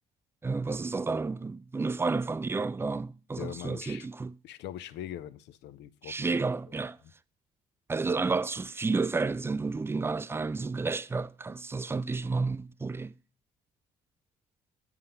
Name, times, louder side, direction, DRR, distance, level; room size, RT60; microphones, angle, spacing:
voice 1, 0.4-4.3 6.0-7.0 7.9-13.1, right 4 dB, 15° right, 0.3 m, -31 dB
voice 2, 3.4-4.1 4.4-6.2, left 12 dB, 65° left, 0.5 m, -41 dB
7.9 x 3.6 x 5.6 m
hypercardioid pair, 55°, 19 cm